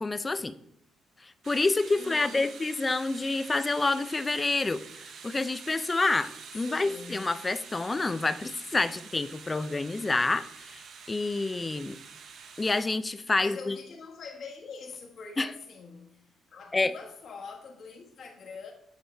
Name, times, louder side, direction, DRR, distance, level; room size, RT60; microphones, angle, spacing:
voice 1, 0.0-0.5 1.2-10.8 11.1-12.0 12.6-13.8 15.4-15.5 16.7-16.9, left 3 dB, 25° left, 0.4 m, -28 dB
sound 1, 1.4-12.8, right 6 dB, 65° right, 0.8 m, -47 dB
voice 2, 1.9-2.6 6.5-7.3 13.4-18.7, left 5 dB, 60° left, 1.5 m, -44 dB
9.2 x 4.7 x 3.4 m
cardioid pair, 90°, 0 cm